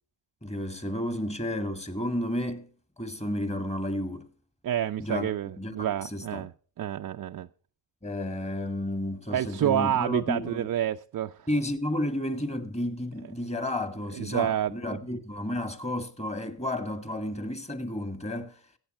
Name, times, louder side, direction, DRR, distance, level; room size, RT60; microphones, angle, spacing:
voice 1, 0.4-2.7 3.0-4.3 5.0-5.3 5.6-6.5 8.0-10.7 11.5-18.6, left 1 dB, 15° left, 2.1 m, -32 dB
voice 2, 4.6-6.5 6.8-7.5 9.3-11.5 14.1-15.0, right 11 dB, 40° right, 0.6 m, -29 dB
15.5 x 8.6 x 4.3 m
supercardioid pair, 55°, 48 cm